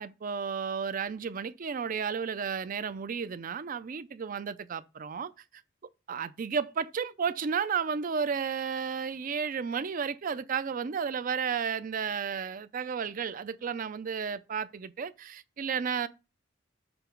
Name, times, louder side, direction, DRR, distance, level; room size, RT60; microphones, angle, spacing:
voice 1, 0.0-5.3 6.1-16.1, right 6 dB, 45° right, 0.4 m, -33 dB
6.9 x 2.9 x 5.9 m
head